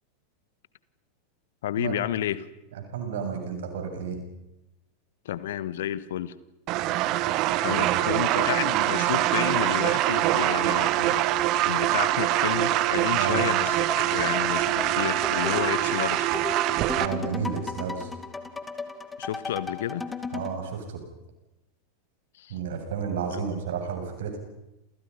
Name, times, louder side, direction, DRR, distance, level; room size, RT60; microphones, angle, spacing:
voice 1, 1.6-2.5 5.2-6.3 7.6-11.2 11.7-16.4 19.2-20.0 22.3-22.5 23.3-23.6, left 11 dB, 60° left, 17 dB, 1.4 m, -31 dB
voice 2, 2.9-4.2 7.7-8.2 13.1-13.4 17.0-18.1 20.3-21.0 22.5-24.4, right 6 dB, 60° right, 4 dB, 7.5 m, -32 dB
sound 1, 6.7-17.1, right 14 dB, 40° right, 1.5 m, -24 dB
sound 2, 13.4-20.6, left 4 dB, 10° left, 2.3 m, -36 dB
29.0 x 28.5 x 5.7 m, 0.91 s
figure-of-eight pair, 90°, 0 cm